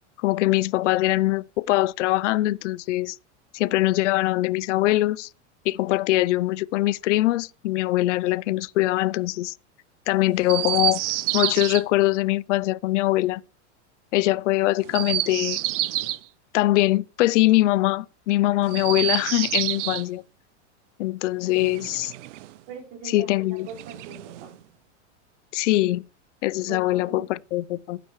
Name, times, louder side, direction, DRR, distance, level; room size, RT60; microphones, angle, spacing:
voice 1, 0.2-3.2 3.5-5.3 5.7-9.5 10.1-11.0 11.3-13.4 14.1-15.6 16.5-20.2 21.0-22.1 23.1-23.7 25.5-26.0 26.4-28.0, left 17 dB, 75° left, 0.6 m, -22 dB
Chirp tweet, 10.4-11.8 14.8-16.2 18.6-20.1 21.5-22.6 23.7-24.6, right 15 dB, 80° right, 0.7 m, -28 dB
voice 2, 22.7-24.6 26.7-27.3, right 6 dB, 55° right, 5.2 m, -41 dB
16.0 x 9.1 x 3.1 m
supercardioid pair, 160°, 36 cm